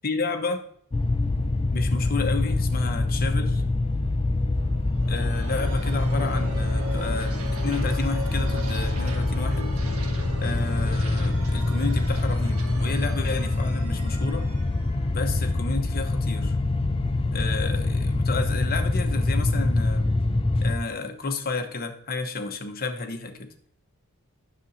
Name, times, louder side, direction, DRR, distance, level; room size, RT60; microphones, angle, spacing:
voice 1, 0.0-0.6 1.7-3.6 5.1-7.3 7.6-9.8 10.4-14.5 15.1-16.6 17.3-20.1 20.6-23.5, left 3 dB, 45° left, 5 dB, 1.0 m, -31 dB
sound 1, 0.9-20.8, left 2 dB, 25° left, 0.5 m, -25 dB
sound 2, 4.6-16.1, right 1 dB, 70° right, 1.5 m, -39 dB
9.6 x 6.8 x 2.7 m, 0.64 s
head